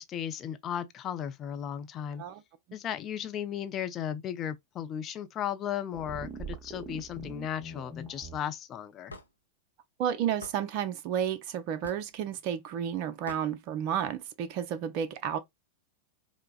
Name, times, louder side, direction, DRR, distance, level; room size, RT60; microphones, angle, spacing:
voice 1, 0.0-2.2 2.7-9.1, left 9 dB, 30° left, 0.4 m, -35 dB
sound 1, 5.9-8.4, right 3 dB, 15° right, 0.9 m, -42 dB
Hammer / Wood, 9.1-9.3 10.4-10.6 11.8-12.1 13.3-13.5, left 2 dB, 80° left, 0.5 m, -43 dB
voice 2, 10.0-15.4, right 9 dB, 45° right, 0.4 m, -31 dB
4.5 x 2.0 x 2.3 m
figure-of-eight pair, 90°, 0 cm